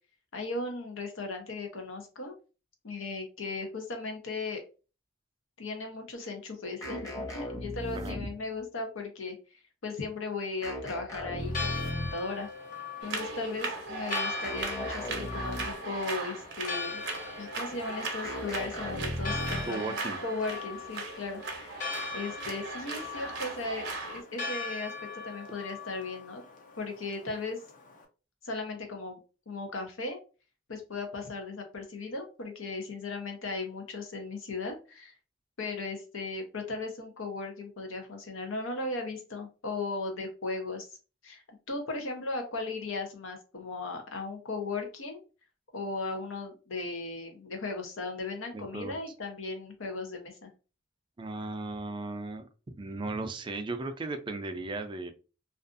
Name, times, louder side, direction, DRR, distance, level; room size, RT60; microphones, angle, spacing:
voice 1, 0.3-2.3 2.8-4.6 5.6-9.3 9.8-12.5 13.0-17.0 17.4-20.0 20.2-21.8 22.1-26.4 26.8-27.6 28.4-29.2 29.5-30.2 30.7-35.1 35.6-40.9 41.2-45.2 45.7-50.5, left 3 dB, 85° left, 4 dB, 0.7 m, -37 dB
sound 1, 6.8-8.6 10.6-12.3 14.4-16.0 18.2-19.8, left 1 dB, 15° left, 0.8 m, -37 dB
Church bell, 11.4-28.0, left 4 dB, 40° left, 0.5 m, -40 dB
sound 2, 13.0-24.2, right 3 dB, 55° right, 0.6 m, -38 dB
voice 2, 19.7-20.2 48.5-49.0 51.2-55.1, right 3 dB, 25° right, 7 dB, 0.3 m, -36 dB
2.5 x 2.4 x 2.4 m, 0.33 s
head